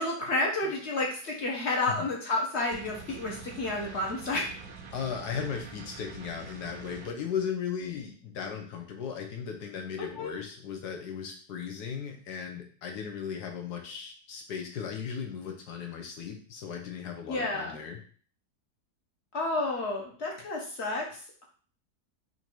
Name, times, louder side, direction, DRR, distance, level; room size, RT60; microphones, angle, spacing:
voice 1, 0.0-4.5 10.2-10.3 17.3-17.8 19.3-21.0, left 2 dB, 45° left, -1 dB, 1.2 m, -30 dB
sound 1, 2.7-7.1, right 5 dB, 65° right, 1.0 m, -45 dB
voice 2, 4.9-18.0, left 7 dB, 75° left, 3 dB, 1.5 m, -36 dB
4.4 x 2.7 x 4.4 m, 0.44 s
omnidirectional pair, 1.7 m